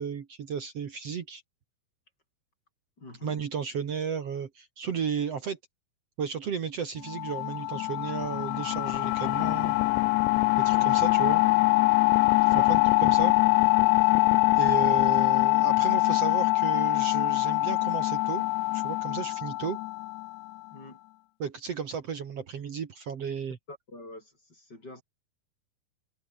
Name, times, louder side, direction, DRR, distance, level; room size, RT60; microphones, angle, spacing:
voice 1, 0.0-1.4 3.2-5.6 6.2-9.8 10.6-11.4 12.5-13.3 14.6-18.4 18.7-19.8 21.4-23.6, right 7 dB, 50° right, 2.1 m, -34 dB
voice 2, 3.0-3.4 10.7-11.1 12.5-12.7 20.7-21.0 23.7-25.0, left 2 dB, 25° left, 7.9 m, -45 dB
sound 1, 7.1-20.5, left 22 dB, 85° left, 2.7 m, -23 dB
omnidirectional pair, 4.7 m